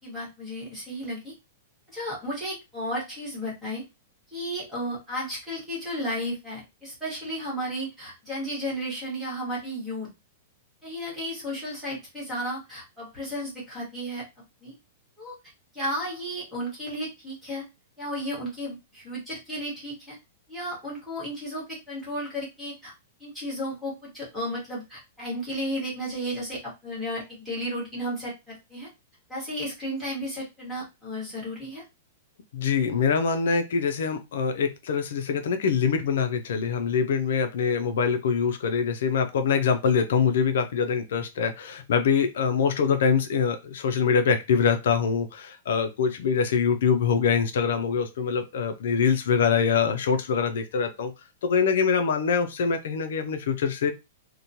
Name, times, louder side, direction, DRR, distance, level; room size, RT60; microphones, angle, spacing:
voice 1, 0.0-1.3 1.9-3.8 4.3-10.1 10.8-14.2 14.6-14.7 15.2-15.4 15.7-17.6 18.0-20.2 20.5-22.9 23.2-28.9 29.3-31.8, equal, 5° right, -6 dB, 1.2 m, -33 dB
voice 2, 32.5-51.1 51.4-53.9, left 6 dB, 65° left, 7 dB, 0.4 m, -24 dB
2.9 x 2.1 x 2.6 m, 0.24 s
supercardioid pair, 170°, 0 cm